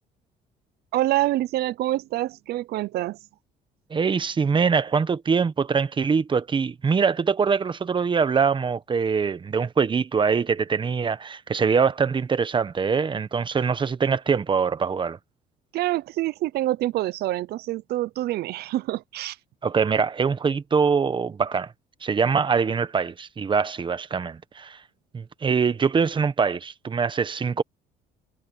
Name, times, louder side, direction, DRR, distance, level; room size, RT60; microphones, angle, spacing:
voice 1, 0.9-3.2 15.7-19.4, right 15 dB, 70° right, 0.6 m, -26 dB
voice 2, 3.9-15.2 19.6-21.7 22.0-24.8 25.1-27.6, right 5 dB, 30° right, 1.2 m, -23 dB
cardioid pair, 110°, 17 cm